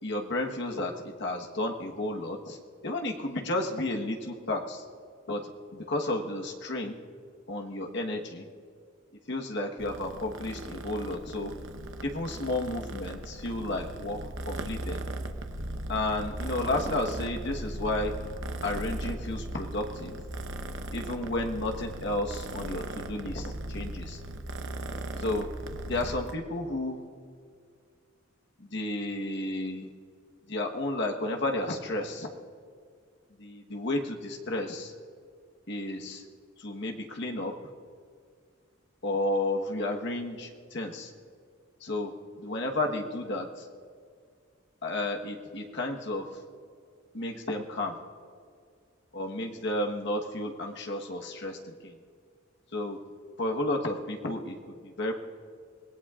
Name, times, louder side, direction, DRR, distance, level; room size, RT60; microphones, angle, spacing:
voice 1, 0.0-0.9 1.2-2.6 2.8-4.8 5.3-7.0 7.5-8.4 9.3-11.5 12.0-15.0 15.9-18.2 18.6-20.2 20.9-24.2 25.2-25.5 25.9-27.0 28.6-29.9 30.5-32.3 33.4-34.9 35.7-36.2 36.6-37.5 39.0-41.1 41.8-43.7 44.8-46.3 47.1-48.0 49.1-51.9 52.7-53.0 53.4-55.1, left 1 dB, 60° left, 2 dB, 1.3 m, -32 dB
Purr, 9.8-26.3, right 1 dB, 65° right, 0.9 m, -38 dB
25.0 x 18.5 x 2.5 m, 2.2 s
head